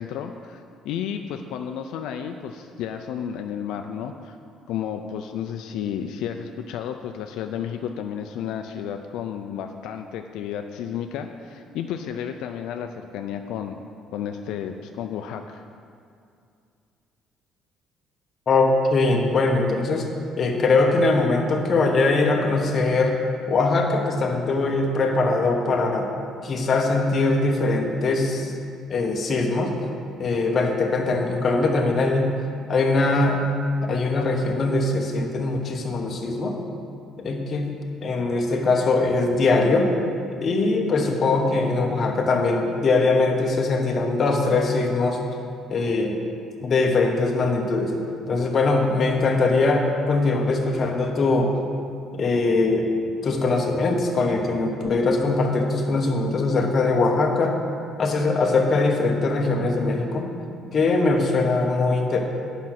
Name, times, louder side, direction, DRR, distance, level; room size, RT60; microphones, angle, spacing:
voice 1, 0.0-4.3 4.7-13.8 14.1-15.7, left 8 dB, 75° left, 5 dB, 0.4 m, -32 dB
voice 2, 18.5-20.0 20.4-23.2 23.5-26.1 26.4-28.5 28.9-29.7 30.2-32.3 32.7-33.4 33.9-36.6 37.2-37.7 38.0-39.9 40.4-45.2 45.7-46.2 46.6-47.9 48.3-51.5 52.1-57.6 58.0-60.3 60.7-62.2, left 3 dB, 35° left, 2 dB, 1.0 m, -21 dB
9.9 x 6.1 x 5.9 m, 2.4 s
cardioid pair, 160°, 0 cm